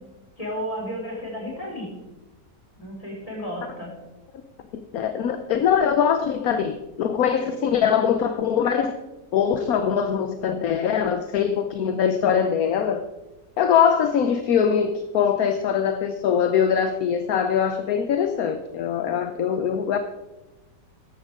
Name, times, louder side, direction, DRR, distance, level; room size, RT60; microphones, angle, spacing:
voice 1, 0.4-1.9 2.8-3.9, equal, 20° left, -4 dB, 5.1 m, -32 dB
voice 2, 4.9-9.0 9.3-13.0 13.6-20.0, left 8 dB, 65° left, 9 dB, 1.1 m, -22 dB
15.0 x 11.5 x 3.7 m, 1.1 s
omnidirectional pair, 1.9 m